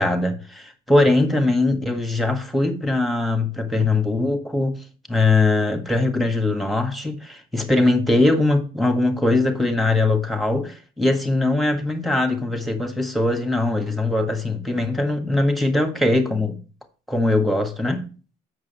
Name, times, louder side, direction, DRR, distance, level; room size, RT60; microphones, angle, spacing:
voice 1, 0.0-4.8 5.1-16.6 17.1-18.1, left 2 dB, ahead, 1.6 m, -21 dB
7.6 x 6.6 x 4.3 m
cardioid pair, 110°, 17 cm